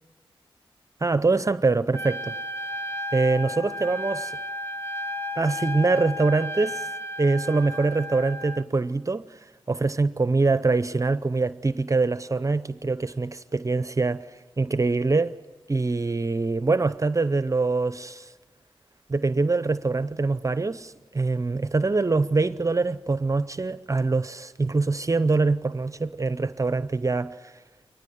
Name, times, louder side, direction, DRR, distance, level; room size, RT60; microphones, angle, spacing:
voice 1, 1.0-2.4 3.1-4.4 5.3-6.9 7.2-9.4 9.7-15.3 15.7-18.3 19.1-27.5, right 3 dB, 35° right, 0.7 m, -24 dB
Trumpet, 1.9-8.7, left 1 dB, 25° left, 1.1 m, -33 dB
23.5 x 19.5 x 9.4 m
cardioid pair, 50°, 10 cm